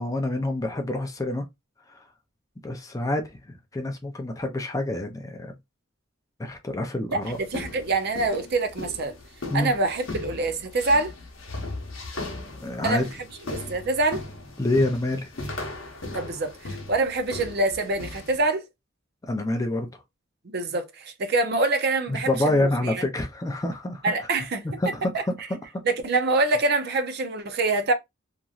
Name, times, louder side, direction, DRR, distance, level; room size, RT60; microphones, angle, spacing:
voice 1, 0.0-1.4 1.9-2.0 2.6-5.5 6.4-7.4 9.5-9.7 12.6-13.1 14.6-15.3 19.2-19.9 22.1-24.0 24.8-25.8, left 1 dB, 15° left, 0.4 m, -27 dB
voice 2, 7.1-9.2 9.5-11.1 12.8-13.1 13.5-14.2 16.1-18.7 20.4-23.0 24.0-24.6 25.1-25.2 25.8-27.9, right 2 dB, 50° right, 0.5 m, -25 dB
sound 1, 7.2-18.5, left 2 dB, 70° left, 0.9 m, -38 dB
3.0 x 2.5 x 2.4 m
head